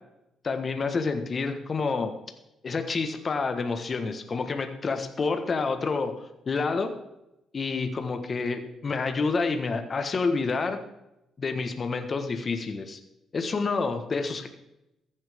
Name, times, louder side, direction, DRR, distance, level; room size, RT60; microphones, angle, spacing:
voice 1, 0.4-2.1 2.6-6.9 7.5-10.8 11.4-13.0 13.3-14.5, left 4 dB, 40° left, 6 dB, 1.4 m, -28 dB
14.5 x 10.5 x 3.6 m, 0.89 s
cardioid pair, 90°, 0 cm